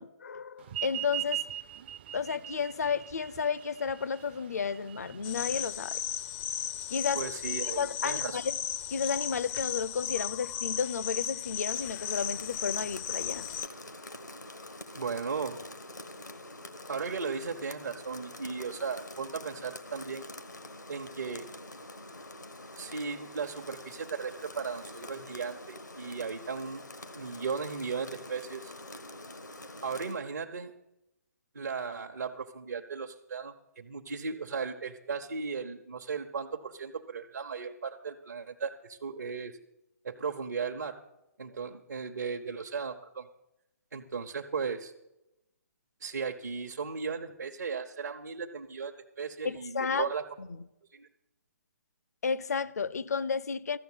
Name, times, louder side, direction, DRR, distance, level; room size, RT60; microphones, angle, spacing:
voice 1, 0.0-1.4 2.1-6.0 6.9-7.3 7.6-8.6 8.9-13.5 49.4-50.1 50.4-50.5 52.2-53.8, left 6 dB, 65° left, 0.6 m, -32 dB
sound 1, 0.7-5.7, right 13 dB, 35° right, 0.5 m, -39 dB
sound 2, 5.2-13.7, left 10 dB, 20° left, 0.4 m, -35 dB
voice 2, 7.1-8.4 15.0-15.6 16.9-20.3 20.9-21.5 22.7-26.8 27.1-28.7 29.8-30.7 31.5-39.6 40.0-41.0 41.4-43.3 43.9-44.9 46.0-50.2 50.9-51.1, right 5 dB, 70° right, 0.9 m, -36 dB
Rain, 11.5-30.2, left 2 dB, 90° left, 1.3 m, -46 dB
13.5 x 7.1 x 8.1 m
figure-of-eight pair, 135°, 9 cm